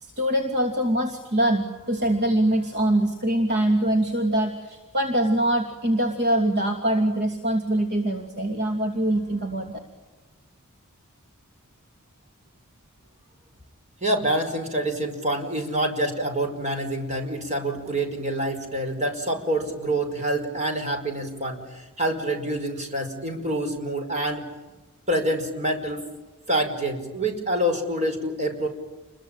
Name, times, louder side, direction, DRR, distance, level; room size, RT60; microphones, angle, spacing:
voice 1, 0.0-9.8, right 1 dB, 50° right, 3 dB, 2.8 m, -23 dB
voice 2, 14.0-24.5 25.1-26.1 26.5-28.7, right 1 dB, 35° right, 4 dB, 5.3 m, -26 dB
29.5 x 22.0 x 9.1 m, 1.2 s
head